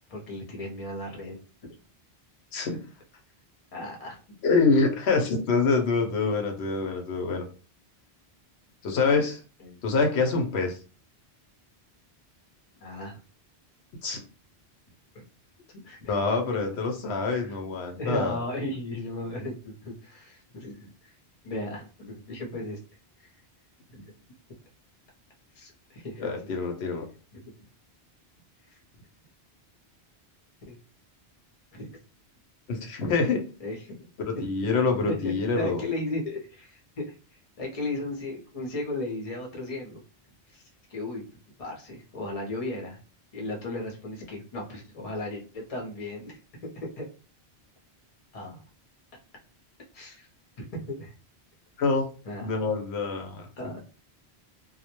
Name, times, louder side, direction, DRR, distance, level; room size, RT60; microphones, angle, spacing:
voice 1, 0.1-1.4 3.7-4.2 9.6-9.8 12.8-13.2 15.8-16.2 17.3-17.6 18.0-21.1 21.4-22.8 24.0-24.1 25.5-26.3 27.3-27.4 30.7-30.8 31.8-31.9 33.6-34.0 35.1-37.1 37.6-40.0 40.5-40.6 40.9-41.2 41.6-43.0 43.3-46.4 46.7-47.1 48.3-48.6 49.9-50.3 50.6-51.1 52.2-52.7 53.6-53.8, left 2 dB, 40° left, 0 dB, 0.7 m, -35 dB
voice 2, 4.4-7.4 8.8-9.4 9.8-10.8 14.0-14.2 16.0-18.4 26.2-27.1 32.7-33.4 34.2-35.8 51.8-52.0 52.4-53.5, left 4 dB, 85° left, 3 dB, 0.9 m, -25 dB
2.2 x 2.1 x 2.8 m, 0.36 s
omnidirectional pair, 1.1 m